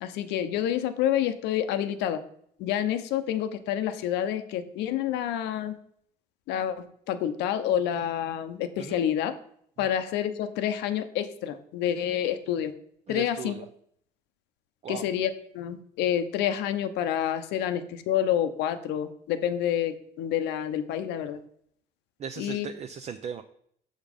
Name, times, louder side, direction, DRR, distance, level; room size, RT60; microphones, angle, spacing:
voice 1, 0.0-2.2 2.6-5.8 6.5-9.4 9.8-12.7 13.1-13.6 14.9-21.4 22.4-22.7, left 10 dB, 90° left, 10 dB, 0.8 m, -28 dB
voice 2, 13.1-13.7 14.8-15.1 22.2-23.4, right 7 dB, 40° right, 7 dB, 0.5 m, -37 dB
7.2 x 5.2 x 5.2 m, 0.66 s
cardioid pair, 110°, 17 cm